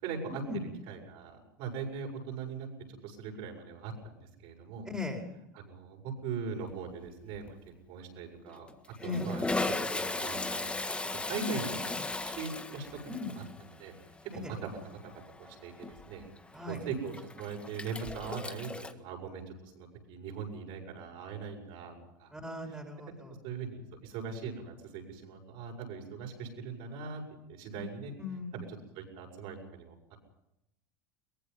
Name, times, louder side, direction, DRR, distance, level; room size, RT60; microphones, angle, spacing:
voice 1, 0.0-4.9 5.5-7.6 7.9-8.7 9.0-10.7 11.2-13.9 14.2-14.7 15.4-16.2 16.7-21.9 22.2-22.3 23.4-27.2 27.5-28.1 28.5-30.2, right 5 dB, 55° right, 1 dB, 7.5 m, -41 dB
voice 2, 4.9-5.2 9.0-9.3 11.4-11.6 13.1-13.3 14.4-14.5 16.5-16.8 22.3-23.3 28.2-28.6, left 3 dB, 5° right, 2 dB, 5.0 m, -38 dB
Toilet flush, 6.7-7.1 7.3-7.5 8.5-18.9, left 2 dB, 10° left, 1.7 m, -37 dB
23.5 x 21.0 x 5.7 m, 0.84 s
hypercardioid pair, 80°, 10 cm